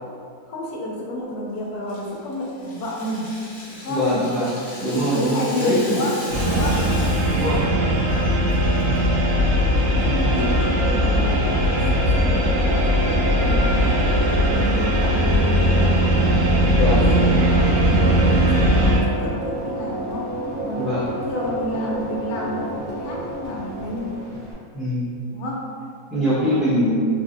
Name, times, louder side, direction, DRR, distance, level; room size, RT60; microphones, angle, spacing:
voice 1, 0.5-3.4 3.7-4.3 4.8-6.9 10.0-14.0 14.5-16.1 16.5-20.3 20.6-24.2 25.3-25.7 26.4-26.7, left 1 dB, 90° left, -3 dB, 1.1 m, -30 dB
Rattle (instrument), 1.9-7.7 8.0-8.1 8.5-9.0, left 1 dB, 55° left, 1.1 m, -38 dB
voice 2, 3.9-4.5 4.8-6.0 6.5-6.8 7.3-7.6 10.0-10.5 16.7-17.0 20.8-21.0 24.7-25.1 26.1-27.0, equal, ahead, -13 dB, 1.0 m, -23 dB
sound 1, 6.3-19.0, equal, 80° right, 1.1 m, -19 dB
sound 2, 8.6-24.5, right 1 dB, 50° right, 0.9 m, -30 dB
3.2 x 2.5 x 2.6 m, 2.3 s
omnidirectional pair, 1.6 m